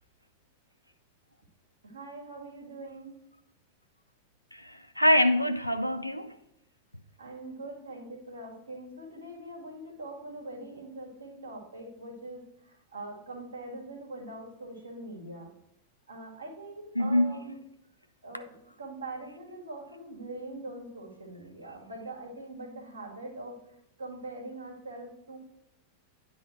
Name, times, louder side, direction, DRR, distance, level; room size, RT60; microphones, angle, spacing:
voice 1, 1.8-3.2 7.2-15.5 16.1-17.6 18.2-18.5 18.8-25.4, right 2 dB, 75° right, 1.7 m, -43 dB
voice 2, 4.5-6.3 17.0-17.3, left 1 dB, 90° left, 0.3 m, -25 dB
9.9 x 3.9 x 4.4 m
figure-of-eight pair, 90°, 0 cm